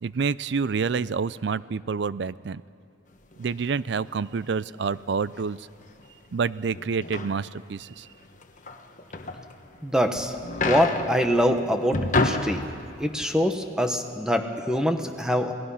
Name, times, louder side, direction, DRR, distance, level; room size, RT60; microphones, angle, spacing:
voice 1, 0.0-2.6 3.4-5.7 6.3-8.1, right 5 dB, 65° right, 18 dB, 0.4 m, -28 dB
sound 1, 3.3-3.6 4.3-4.4 5.3-5.5 5.8-6.1 6.7-9.8 10.1-13.0, left 2 dB, 45° left, 1.2 m, -30 dB
voice 2, 9.8-10.3 10.6-12.6 13.0-15.5, equal, 5° right, 5 dB, 1.2 m, -24 dB
28.0 x 18.5 x 5.7 m, 2.5 s
head